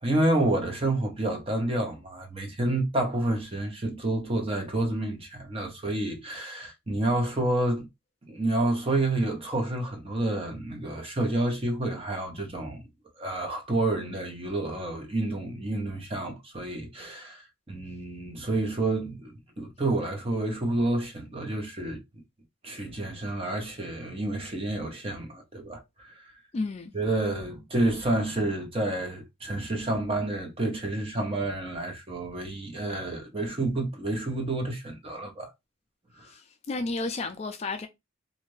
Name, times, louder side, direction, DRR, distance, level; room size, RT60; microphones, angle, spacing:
voice 1, 0.0-7.9 8.3-12.9 13.2-22.0 22.6-26.3 26.9-35.5 36.2-36.3, right 2 dB, 25° right, 0.8 m, -29 dB
voice 2, 26.5-26.9 36.2-37.9, left 3 dB, 30° left, 0.3 m, -32 dB
2.6 x 2.4 x 3.1 m
head